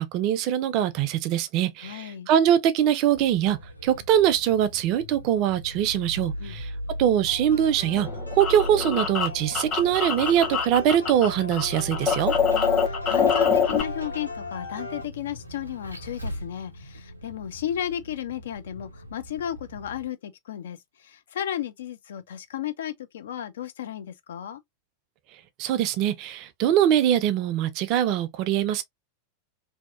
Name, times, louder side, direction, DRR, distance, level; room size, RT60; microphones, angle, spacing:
voice 1, 0.0-6.7 7.0-12.3 25.6-28.8, right 10 dB, 40° right, 0.4 m, -23 dB
voice 2, 1.8-2.3 6.4-6.6 12.5-24.6, left 10 dB, 60° left, 0.4 m, -34 dB
Vehicle, 3.1-20.1, equal, 90° right, 0.5 m, -38 dB
sound 1, 7.2-15.0, left 2 dB, 90° left, 0.7 m, -39 dB
sound 2, 7.9-11.3 11.5-13.8, left 6 dB, 30° left, 0.9 m, -25 dB
2.7 x 2.2 x 2.3 m
figure-of-eight pair, 90°, 0 cm